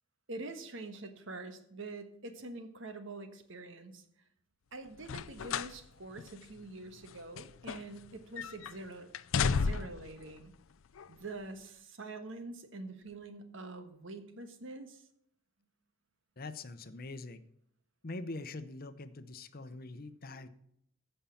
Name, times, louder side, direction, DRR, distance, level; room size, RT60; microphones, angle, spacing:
voice 1, 0.3-4.0 4.7-9.1 9.4-10.5 11.1-15.1, right 2 dB, 70° right, 8 dB, 1.4 m, -45 dB
sound 1, 5.0-5.8 6.2-6.3 7.0-8.1 8.4-8.7 9.1-10.1 10.9-11.1, left 5 dB, 75° left, 0.5 m, -33 dB
voice 2, 16.4-17.4 18.0-20.5, left 2 dB, 45° left, 12 dB, 0.8 m, -43 dB
14.5 x 5.6 x 7.1 m, 0.72 s
head